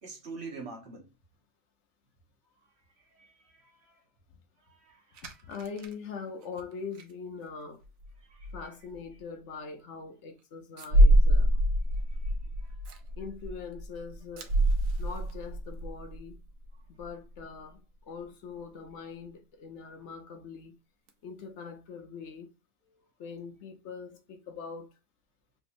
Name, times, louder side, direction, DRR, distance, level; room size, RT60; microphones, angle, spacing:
voice 1, 0.0-1.1 3.0-4.0 4.6-5.2 8.2-8.5 12.1-12.3 12.6-13.0 22.9-23.0, right 4 dB, 55° right, 1.3 m, -46 dB
sound 1, 5.2-5.9 6.4-6.6 6.9-7.0 7.8-8.1 8.4-8.6 8.9-9.0 10.8-16.7 17.0-17.1 17.3-17.4 21.1-21.2, equal, 90° right, 1.1 m, -26 dB
voice 2, 5.4-7.8 8.5-11.5 13.2-14.5 15.0-16.4 16.9-20.8 21.2-22.5 23.2-24.9, left 5 dB, 65° left, 1.0 m, -42 dB
3.5 x 3.0 x 2.6 m
omnidirectional pair, 1.4 m